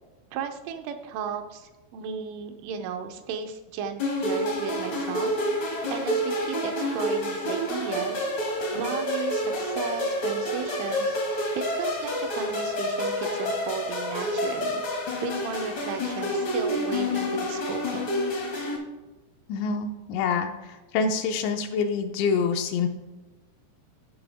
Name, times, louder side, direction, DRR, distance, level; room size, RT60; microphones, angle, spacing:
voice 1, 0.3-5.3 5.9-8.3 8.7-18.1, right 6 dB, 80° right, 6 dB, 3.2 m, -35 dB
sound 1, 4.0-18.7, left 1 dB, 65° left, 1.2 m, -28 dB
voice 2, 19.5-22.9, left 5 dB, 80° left, 5 dB, 2.9 m, -26 dB
16.0 x 5.8 x 3.5 m, 1.2 s
omnidirectional pair, 5.6 m